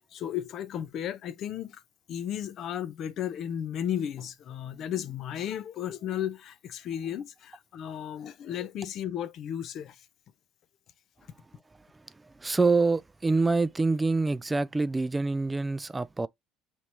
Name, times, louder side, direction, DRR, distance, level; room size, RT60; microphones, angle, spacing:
voice 1, 0.1-1.8 2.1-10.1, left 10 dB, 60° left, 0.5 m, -34 dB
voice 2, 12.4-16.3, right 3 dB, 15° right, 0.3 m, -26 dB
5.4 x 3.1 x 2.9 m
supercardioid pair, 90°, 0 cm